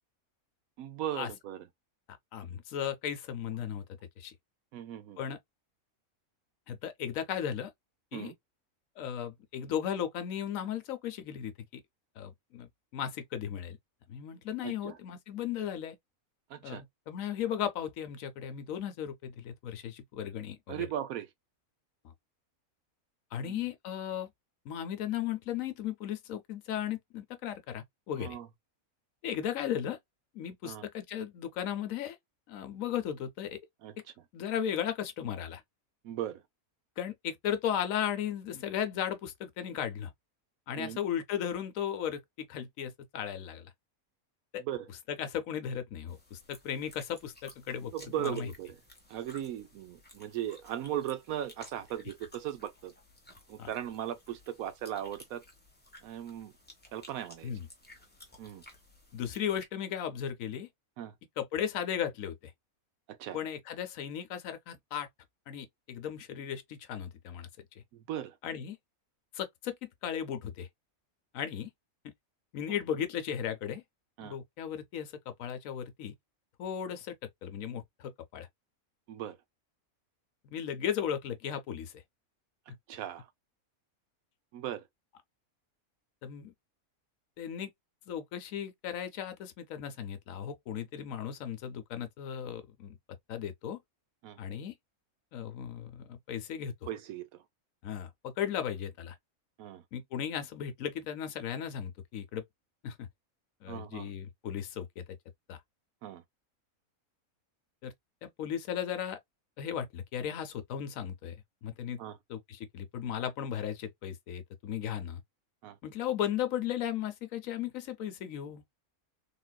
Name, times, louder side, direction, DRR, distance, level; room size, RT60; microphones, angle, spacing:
voice 1, 0.8-1.6 4.7-5.2 8.1-8.3 14.6-15.0 16.5-16.8 20.7-21.3 23.4-23.6 28.2-28.5 30.6-30.8 33.8-33.9 36.0-36.4 40.8-41.0 44.6-44.9 47.9-48.8 49.1-52.9 53.5-55.4 56.0-56.5 56.9-57.5 58.4-58.6 61.0-61.1 63.1-63.4 67.9-68.3 72.9-73.0 74.2-74.4 79.1-79.4 82.9-83.3 84.5-84.8 94.2-94.4 96.9-97.3 99.6-99.8 103.7-104.1 106.0-106.2 112.0-112.2 115.6-115.8, right 11 dB, 75° right, 1.0 m, -38 dB
voice 2, 2.1-3.8 4.2-4.3 5.2-5.4 6.7-7.7 8.1-8.3 9.0-11.8 12.2-13.8 14.1-16.0 16.6-20.9 23.3-24.3 24.6-28.4 29.2-30.0 30.3-32.2 32.5-33.6 34.3-35.6 37.0-40.1 40.7-43.7 44.5-44.6 45.1-47.9 48.2-48.5 53.6-53.7 57.4-57.7 59.1-60.7 61.4-62.5 63.3-65.1 65.5-67.5 68.4-68.8 69.3-70.7 71.3-71.7 72.5-73.8 74.2-76.1 76.6-77.1 77.4-78.5 80.4-81.9 86.2-86.5 87.4-87.7 88.1-92.9 93.3-93.8 94.4-94.7 95.3-96.7 97.8-99.2 99.9-102.4 102.8-103.1 103.6-105.0 105.5-105.6 107.8-107.9 108.2-109.2 109.6-111.3 111.6-112.0 112.3-115.2 115.8-118.6, left 9 dB, 70° left, 1.0 m, -36 dB
sound 1, 46.1-59.6, left 1 dB, 10° left, 0.8 m, -56 dB
3.7 x 2.4 x 2.2 m
omnidirectional pair, 1.5 m